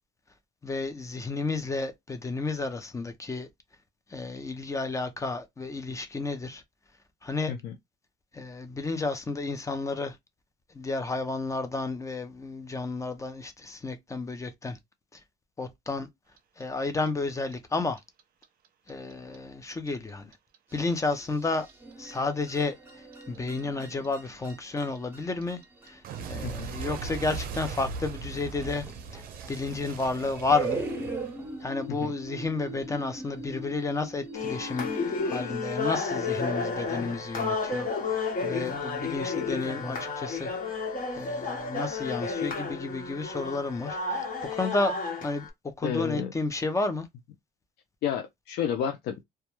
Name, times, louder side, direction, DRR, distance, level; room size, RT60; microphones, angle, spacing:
voice 1, 0.6-3.5 4.1-6.6 7.2-7.5 8.3-10.2 10.7-14.8 15.1-15.2 15.6-16.1 16.6-18.0 18.9-20.3 20.7-21.7 22.0-22.8 23.3-25.6 25.9-26.0 26.3-28.9 29.1-29.2 29.5-30.8 31.6-40.5 41.1-44.9 45.2-45.5 45.8-47.1, left 3 dB, 20° left, 0.5 m, -31 dB
Clock, 16.4-19.4 19.6-22.6 22.9-31.7, right 5 dB, 60° right, 0.5 m, -39 dB
sound 1, 20.7-35.5, right 3 dB, 15° right, 0.9 m, -40 dB
sound 2, 34.3-45.5, left 4 dB, 55° left, 1.2 m, -32 dB
voice 2, 45.8-46.3 48.0-49.2, left 8 dB, 75° left, 0.5 m, -31 dB
2.3 x 2.1 x 2.9 m
cardioid pair, 110°, 17 cm